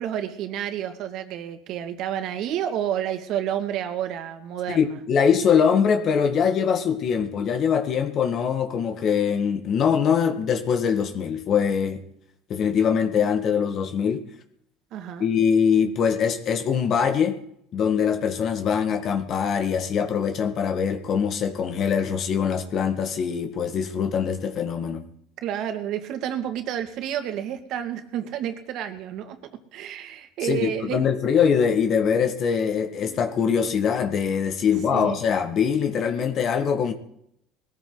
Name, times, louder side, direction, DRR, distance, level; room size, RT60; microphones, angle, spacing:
voice 1, 0.0-5.0 14.9-15.3 25.4-31.0 34.9-35.2, right 10 dB, 60° right, 8 dB, 2.2 m, -30 dB
voice 2, 4.7-12.0 12.5-14.2 15.2-17.4 17.7-25.0 30.4-36.9, left 7 dB, 50° left, 6 dB, 1.8 m, -23 dB
20.5 x 14.0 x 4.0 m, 0.72 s
supercardioid pair, 95°, 0 cm